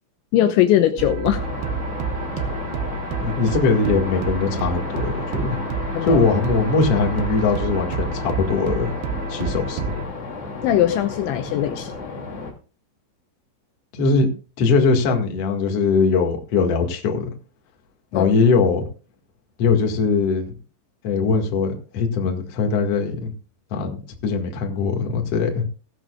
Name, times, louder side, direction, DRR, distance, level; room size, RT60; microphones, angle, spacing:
voice 1, 0.3-1.4 5.9-6.2 10.6-11.9 18.1-18.3, left 12 dB, 80° left, 2.8 m, -20 dB
sound 1, 1.0-10.0, right 5 dB, 75° right, 2.4 m, -29 dB
sound 2, 1.4-12.5, left 3 dB, 35° left, 3.1 m, -33 dB
voice 2, 3.2-5.6 6.0-8.9 9.3-10.0 13.9-14.3 14.6-17.3 18.1-18.9 19.6-20.5 21.0-23.3 23.7-25.6, left 4 dB, 50° left, 1.8 m, -21 dB
16.5 x 13.0 x 2.4 m
omnidirectional pair, 5.9 m